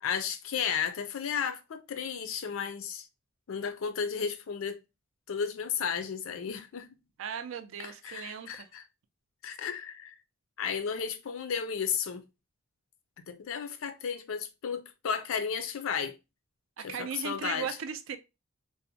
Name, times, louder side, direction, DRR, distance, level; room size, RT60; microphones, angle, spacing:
voice 1, 0.0-3.1 3.5-4.8 5.3-6.9 7.8-8.8 9.4-10.2 10.6-12.2 13.3-16.2 16.8-17.7, left 7 dB, 75° left, 0.4 m, -33 dB
voice 2, 7.2-8.7 16.8-18.2, right 7 dB, 70° right, 0.4 m, -37 dB
2.6 x 2.0 x 2.7 m
head